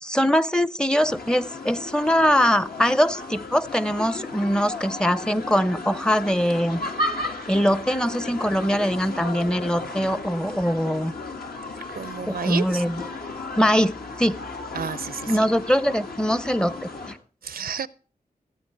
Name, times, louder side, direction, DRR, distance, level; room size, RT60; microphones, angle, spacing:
voice 1, 0.0-6.8 7.5-11.1 12.3-13.0 13.6-14.4 15.3-16.7 17.1-17.2, equal, 5° left, 16 dB, 0.5 m, -22 dB
sound 1, 1.0-17.1, left 2 dB, 85° left, 2.1 m, -34 dB
voice 2, 11.9-12.8 14.7-15.3 17.4-17.9, right 7 dB, 75° right, 19 dB, 0.5 m, -31 dB
16.5 x 8.5 x 4.6 m, 0.39 s
wide cardioid pair, 120°, 15 cm